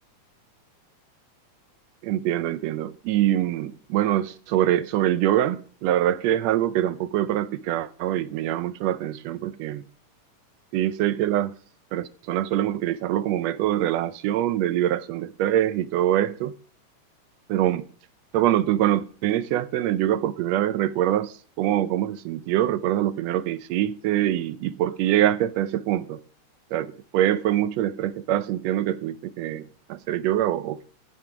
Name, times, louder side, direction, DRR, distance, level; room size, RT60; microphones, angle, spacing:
voice 1, 2.0-9.8 10.7-11.5 11.9-16.5 17.5-17.8 18.3-26.2 26.7-30.8, right 12 dB, 80° right, 1.6 m, -24 dB
15.0 x 5.5 x 4.7 m
omnidirectional pair, 3.5 m